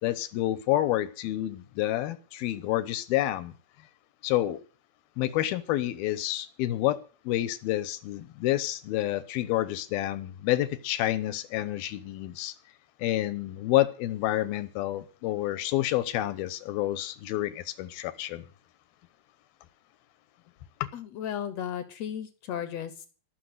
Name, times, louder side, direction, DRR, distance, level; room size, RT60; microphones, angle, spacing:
voice 1, 0.0-3.5 4.2-4.6 5.2-7.0 7.3-12.5 13.0-18.4, left 14 dB, 85° left, 2.9 m, -29 dB
voice 2, 20.9-23.1, left 9 dB, 65° left, 1.8 m, -35 dB
17.0 x 6.9 x 7.9 m
omnidirectional pair, 4.2 m